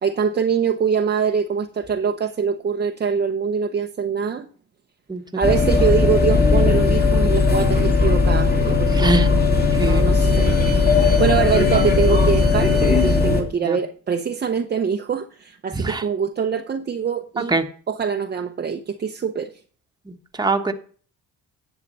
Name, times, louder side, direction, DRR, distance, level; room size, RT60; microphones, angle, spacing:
voice 1, 0.0-4.5 5.4-9.4 9.8-17.6 17.9-19.5, right 6 dB, 30° right, 0.8 m, -24 dB
sound 1, 5.4-13.4, left 3 dB, 25° left, 2.4 m, -17 dB
voice 2, 8.9-9.3 9.7-10.0 13.6-13.8 15.7-16.0 17.5-17.6 20.1-20.7, right 2 dB, 10° right, 1.3 m, -22 dB
10.5 x 7.5 x 5.4 m
cardioid pair, 115°, 35 cm